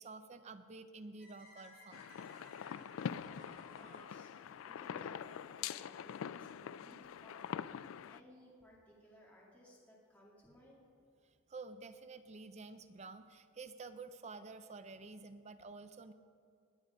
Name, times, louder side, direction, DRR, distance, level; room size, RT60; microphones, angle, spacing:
voice 1, 0.0-2.0 11.2-16.1, right 3 dB, 30° right, 10 dB, 0.4 m, -50 dB
sound 1, 1.2-5.3, left 2 dB, 50° left, 3.8 m, -60 dB
sound 2, 1.9-8.2, left 8 dB, 75° left, 0.3 m, -44 dB
voice 2, 2.8-10.8, equal, 5° left, -5 dB, 2.2 m, -61 dB
20.0 x 8.0 x 5.1 m, 2.2 s
head